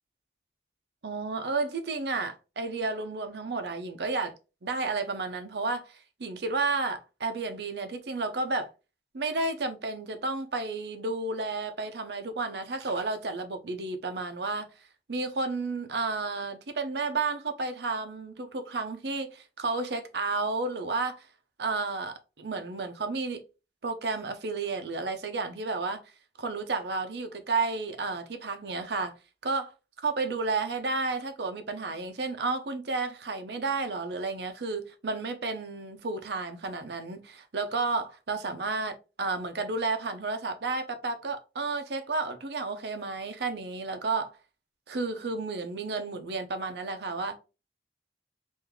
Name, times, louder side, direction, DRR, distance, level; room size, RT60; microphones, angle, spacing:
voice 1, 1.0-4.3 4.6-8.7 9.1-14.7 15.1-21.3 21.6-23.4 23.8-26.0 26.4-29.1 29.4-29.7 30.0-44.3 44.9-47.4, right 3 dB, 75° right, 0.6 m, -32 dB
3.8 x 2.6 x 3.0 m
head